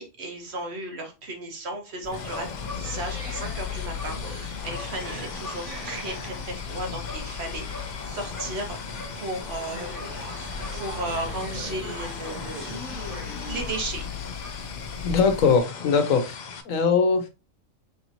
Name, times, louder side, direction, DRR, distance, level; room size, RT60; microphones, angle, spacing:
voice 1, 0.0-2.5 2.7-10.1 10.7-13.1 13.5-14.0, right 2 dB, 55° right, 3 dB, 1.2 m, -35 dB
sound 1, 2.0-15.6, left 6 dB, 15° left, 1.4 m, -37 dB
sound 2, 2.1-16.6, left 5 dB, 60° left, 0.4 m, -39 dB
sound 3, 2.8-13.7, right 1 dB, 90° right, 1.9 m, -42 dB
voice 2, 15.0-16.3 16.7-17.2, left 5 dB, 80° left, 7 dB, 1.2 m, -21 dB
4.8 x 2.9 x 2.6 m, 0.27 s
omnidirectional pair, 1.4 m